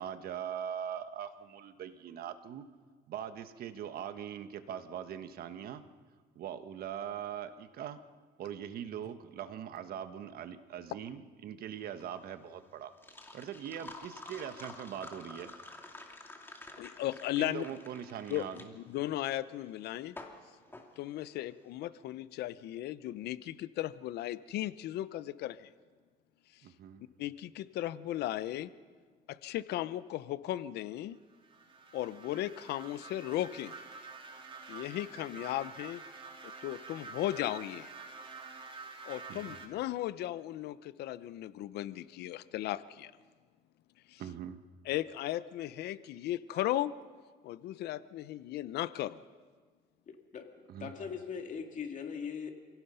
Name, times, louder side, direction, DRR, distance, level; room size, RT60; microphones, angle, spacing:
voice 1, 0.0-2.6 3.1-5.8 6.3-8.0 8.4-12.9 13.3-15.5 17.4-18.7 26.6-27.0 39.3-39.4 44.2-44.6 50.7-50.9, right 9 dB, 65° right, 10 dB, 1.3 m, -41 dB
sound 1, 11.8-21.6, left 2 dB, 15° left, 2.4 m, -50 dB
voice 2, 16.8-17.6 18.3-20.2 21.0-25.7 26.5-26.6 27.2-28.7 29.3-31.2 31.9-33.8 34.7-36.0 36.4-37.9 39.1-43.1 44.1-44.2 44.8-46.9 47.4-49.2, left 14 dB, 75° left, 16 dB, 0.7 m, -36 dB
sound 2, 31.3-39.7, right 4 dB, 30° right, 2.7 m, -48 dB
voice 3, 50.1-50.5 50.8-52.5, left 6 dB, 50° left, 4 dB, 2.6 m, -40 dB
28.0 x 17.0 x 5.6 m, 1.5 s
cardioid pair, 110°, 17 cm